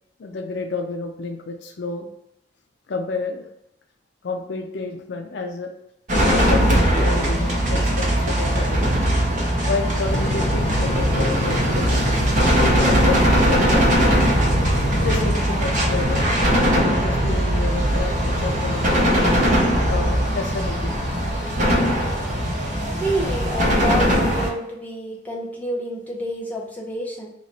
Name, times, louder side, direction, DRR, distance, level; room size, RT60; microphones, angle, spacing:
voice 1, 0.2-2.1 2.9-3.5 4.2-5.7 6.3-8.9 9.6-12.1 12.6-14.3 15.0-16.4 16.7-19.2 19.9-21.1, left 3 dB, 70° left, 4 dB, 0.4 m, -30 dB
sound 1, 6.1-24.5, equal, 45° right, 0.8 m, -20 dB
sound 2, 10.1-15.3, left 1 dB, 85° left, 0.9 m, -27 dB
voice 2, 22.9-27.3, right 1 dB, 10° left, -3 dB, 0.7 m, -28 dB
3.1 x 2.4 x 4.0 m, 0.82 s
head